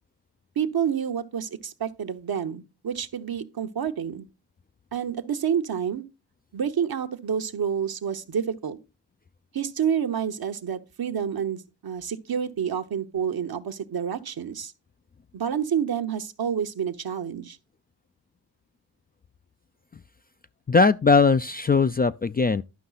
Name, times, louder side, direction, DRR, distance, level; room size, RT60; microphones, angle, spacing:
voice 1, 0.6-4.3 4.9-6.0 6.5-8.8 9.5-14.7 15.3-17.6, right 8 dB, 60° right, 1.0 m, -28 dB
voice 2, 20.7-22.6, left 4 dB, 25° left, 0.4 m, -20 dB
11.5 x 5.4 x 4.0 m
supercardioid pair, 45°, 42 cm